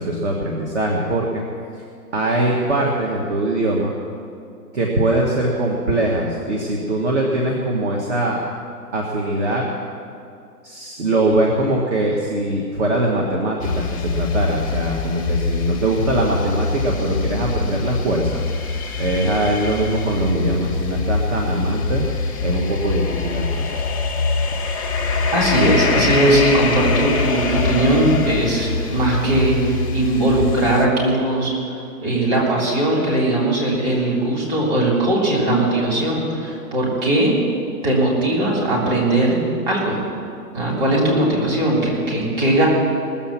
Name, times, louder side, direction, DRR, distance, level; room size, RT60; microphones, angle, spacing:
voice 1, 0.0-1.4 2.1-3.9 4.7-8.4 8.9-9.6 10.6-18.4 19.0-22.0 22.4-23.9, right 1 dB, 45° right, -1 dB, 1.6 m, -21 dB
sound 1, 13.6-30.9, left 4 dB, 20° left, 0.7 m, -24 dB
voice 2, 25.3-37.3 37.8-39.4 39.7-40.0 40.5-42.7, right 1 dB, 25° right, -4 dB, 3.6 m, -19 dB
19.0 x 7.3 x 7.4 m, 2.5 s
hypercardioid pair, 165°, 49 cm